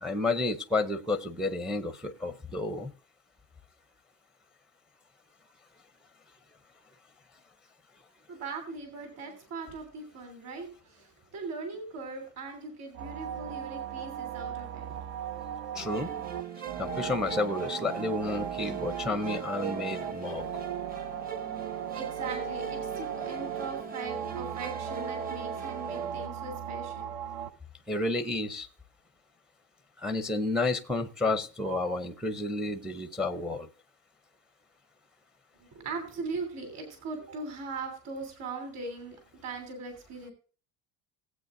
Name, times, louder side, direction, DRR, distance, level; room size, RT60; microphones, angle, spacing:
voice 1, 0.0-2.9 15.8-16.1 16.8-20.5 27.9-28.7 30.0-33.7, left 2 dB, ahead, 9 dB, 0.5 m, -31 dB
voice 2, 8.3-15.1 21.9-27.1 35.6-39.2 39.4-40.3, right 3 dB, 45° right, 4 dB, 3.3 m, -40 dB
sound 1, 12.9-27.5, right 10 dB, 75° right, 0.9 m, -38 dB
sound 2, 15.7-26.3, right 5 dB, 25° right, 0.9 m, -39 dB
18.5 x 8.3 x 2.6 m, 0.38 s
cardioid pair, 175°, 38 cm